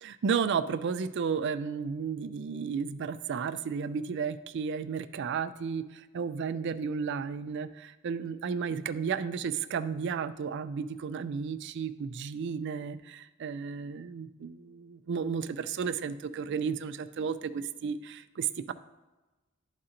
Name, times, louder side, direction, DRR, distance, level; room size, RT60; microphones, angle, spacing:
voice 1, 0.0-18.7, right 6 dB, 55° right, 11 dB, 0.3 m, -33 dB
12.0 x 4.2 x 2.5 m, 1.1 s
head